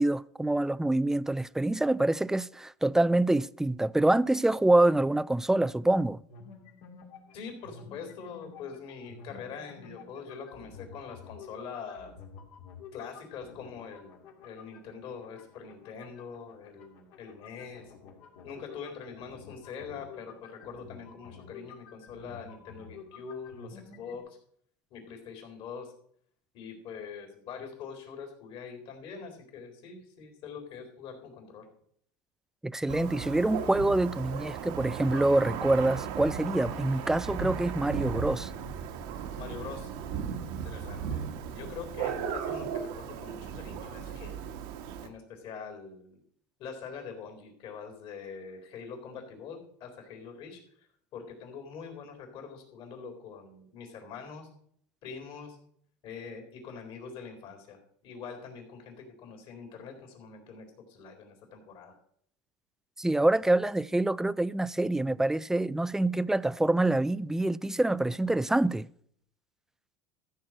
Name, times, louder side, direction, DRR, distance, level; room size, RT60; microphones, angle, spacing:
voice 1, 0.0-6.2 32.6-38.5 63.0-68.9, right 2 dB, 5° right, 0.3 m, -26 dB
sound 1, 6.3-24.2, left 5 dB, 70° left, 2.7 m, -51 dB
voice 2, 7.3-12.1 12.9-14.1 14.4-17.9 18.4-24.4 24.9-25.9 26.5-31.7 39.3-39.9 40.5-44.4 45.0-46.2 46.6-50.6 51.1-54.5 55.0-55.6 56.0-62.0, left 6 dB, 55° left, 4.0 m, -44 dB
Thunder, 32.9-45.1, right 7 dB, 70° right, 1.4 m, -36 dB
13.5 x 4.7 x 7.7 m
supercardioid pair, 110°, 11 cm